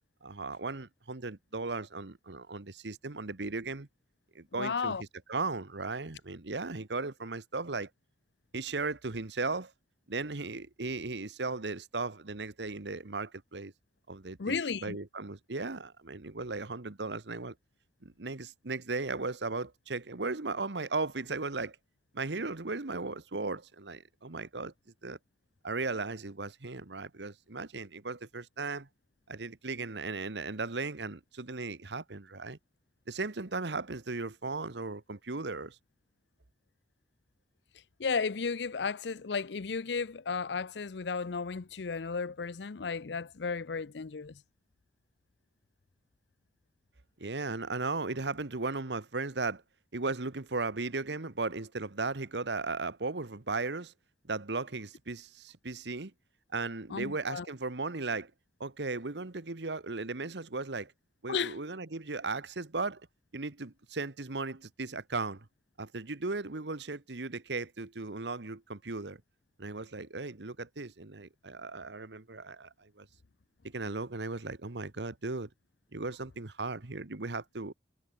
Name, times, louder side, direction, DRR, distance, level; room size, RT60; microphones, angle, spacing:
voice 1, 0.2-3.9 4.3-5.0 5.3-7.9 8.5-9.7 10.1-13.7 14.1-17.5 18.0-21.8 22.1-24.7 25.0-25.2 25.6-28.9 29.3-32.6 33.1-35.7 47.2-49.6 49.9-53.9 54.2-56.1 56.5-58.3 58.6-60.9 61.2-63.0 63.3-65.5 65.8-69.2 69.6-73.1 73.6-75.5 75.9-77.7, right 3 dB, 80° right, 1.3 m, -36 dB
voice 2, 4.5-5.0 14.4-15.0 38.0-44.4 56.9-57.5 61.3-61.6, left 5 dB, 75° left, 0.6 m, -34 dB
head